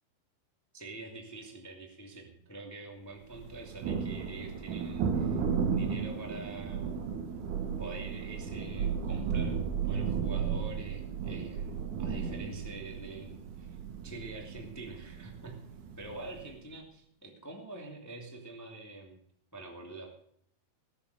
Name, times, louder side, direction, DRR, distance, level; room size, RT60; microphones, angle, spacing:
voice 1, 0.7-7.0 7.8-13.8 14.0-15.6 16.0-19.2 19.5-20.3, right 2 dB, 20° left, 2 dB, 0.4 m, -46 dB
Thunder, 3.3-16.5, right 6 dB, 65° right, 2.1 m, -34 dB
20.0 x 7.2 x 6.7 m, 0.68 s
omnidirectional pair, 5.4 m